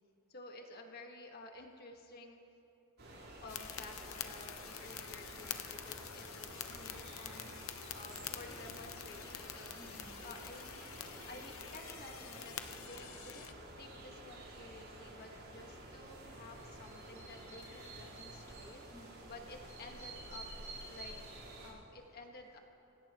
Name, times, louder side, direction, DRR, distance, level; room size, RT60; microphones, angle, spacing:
voice 1, 0.3-2.4 3.4-7.7 7.9-9.8 10.2-12.5 12.8-18.8 19.3-20.5 20.9-21.2 21.6-22.6, left 2 dB, 45° left, 2 dB, 1.6 m, -53 dB
sound 1, 3.0-21.7, right 1 dB, 80° right, 4.1 m, -51 dB
sound 2, 3.5-13.5, left 9 dB, 70° left, 0.8 m, -47 dB
voice 2, 8.5-9.0 9.7-10.2 10.9-11.7 12.1-12.6 18.9-20.0 20.9-22.6, equal, 5° right, -7 dB, 4.4 m, -61 dB
25.5 x 17.5 x 3.1 m, 3.0 s
head